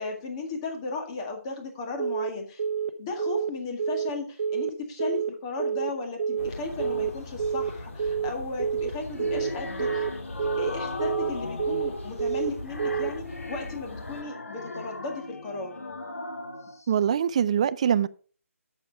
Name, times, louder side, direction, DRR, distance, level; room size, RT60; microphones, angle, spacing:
voice 1, 0.0-2.6 3.0-10.0 10.5-15.7, left 3 dB, 20° left, 1.9 m, -35 dB
Telephone, 2.0-2.3 2.6-2.9 3.2-3.5 3.8-4.1 4.4-4.7 5.0-5.3 5.6-5.9 6.2-6.5 6.8-7.1 7.4-7.7 8.0-8.3 8.6-8.9 9.2-9.5 9.8-10.1 10.4-10.7 11.0-11.3 11.6-11.9 12.2-12.5 12.8-13.1, right 7 dB, 45° right, 0.8 m, -28 dB
sound 1, 6.3-7.3 8.8-16.9, left 2 dB, 90° left, 1.5 m, -38 dB
sound 2, 6.4-14.2, left 2 dB, 60° left, 2.3 m, -41 dB
voice 2, 16.9-18.1, right 8 dB, 25° right, 0.3 m, -23 dB
9.2 x 7.1 x 4.7 m
figure-of-eight pair, 160°, 8 cm